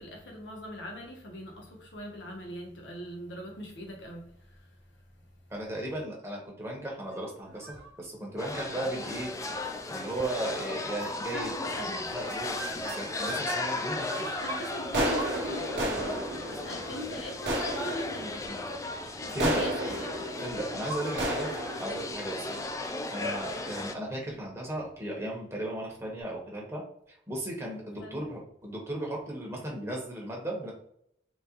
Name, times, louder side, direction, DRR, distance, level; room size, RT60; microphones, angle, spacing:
voice 1, 0.0-5.3 11.2-12.1 14.4-20.3 24.3-24.5 28.0-28.2, left 1 dB, 85° left, 1.2 m, -41 dB
voice 2, 5.5-9.3 9.9-11.5 12.1-12.6 12.9-14.3 19.3-19.6 20.4-21.5 21.8-26.8 27.3-30.7, right 1 dB, 15° right, 1.3 m, -36 dB
sound 1, 7.5-7.9 8.5-8.7 9.4-9.6 9.9-10.0 10.4-10.7 11.3-11.6 11.9-13.6 14.0-23.2, right 1 dB, 75° right, 1.0 m, -35 dB
sound 2, 8.4-24.0, left 2 dB, 20° left, 0.3 m, -36 dB
4.0 x 3.2 x 3.1 m
head